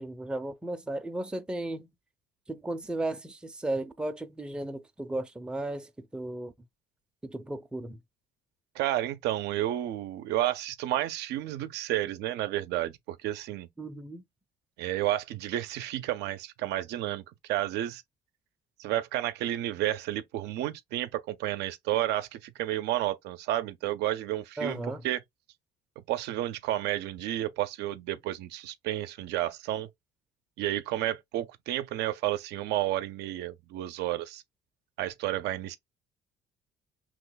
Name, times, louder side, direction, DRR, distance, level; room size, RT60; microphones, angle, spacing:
voice 1, 0.0-1.9 2.5-6.5 7.2-8.0 13.8-14.2 24.6-25.0, right 2 dB, 5° right, 0.4 m, -35 dB
voice 2, 8.7-13.7 14.8-18.0 18.8-25.2 26.1-29.9 30.6-34.4 35.0-35.8, right 14 dB, 80° right, 0.5 m, -31 dB
3.0 x 2.1 x 3.8 m
cardioid pair, 110°, 17 cm